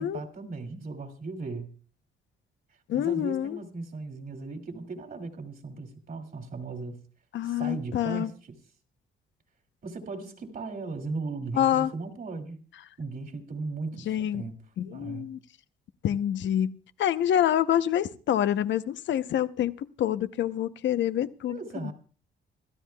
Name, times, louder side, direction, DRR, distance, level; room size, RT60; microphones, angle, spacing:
voice 1, 0.0-1.7 2.9-7.0 7.4-8.6 9.8-12.6 13.0-14.6 14.9-15.3 21.5-21.9, right 3 dB, 50° right, 2.5 m, -37 dB
voice 2, 2.9-3.6 7.3-8.3 11.5-11.9 14.1-14.4 14.8-15.4 16.0-16.7 17.0-21.9, left 11 dB, 70° left, 0.8 m, -27 dB
26.0 x 13.0 x 2.3 m
cardioid pair, 90°, 20 cm